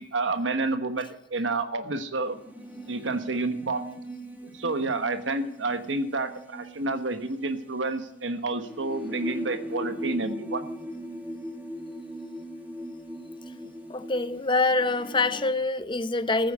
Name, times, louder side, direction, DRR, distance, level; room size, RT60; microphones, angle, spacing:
voice 1, 0.0-2.4 2.9-3.8 4.5-10.7, right 3 dB, 80° right, 1.2 m, -29 dB
sound 1, 2.2-15.5, equal, 10° right, 2.0 m, -39 dB
voice 2, 13.9-16.5, left 3 dB, 25° left, 0.8 m, -25 dB
14.5 x 9.1 x 8.3 m
head